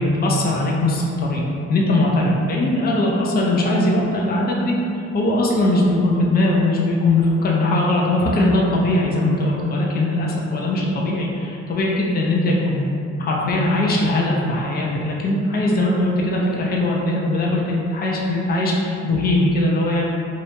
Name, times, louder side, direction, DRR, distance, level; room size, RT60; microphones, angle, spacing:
voice 1, 0.0-1.4 1.7-4.7 5.1-12.9 13.2-20.0, left 1 dB, 30° left, -2 dB, 0.5 m, -20 dB
2.9 x 2.7 x 3.2 m, 2.6 s
cardioid pair, 90°, 30 cm